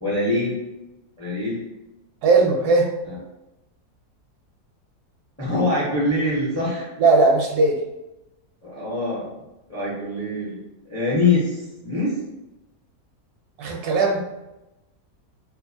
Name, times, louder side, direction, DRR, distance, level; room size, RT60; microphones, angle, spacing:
voice 1, 0.0-0.6 1.2-1.6 3.1-3.2 5.4-6.9 8.6-9.3 9.7-10.6 10.9-12.1, left 2 dB, 20° left, -7 dB, 0.5 m, -24 dB
voice 2, 2.2-2.9 7.0-7.8 13.6-14.2, right 3 dB, 75° right, 1 dB, 1.1 m, -18 dB
2.7 x 2.4 x 2.7 m, 0.96 s
omnidirectional pair, 1.7 m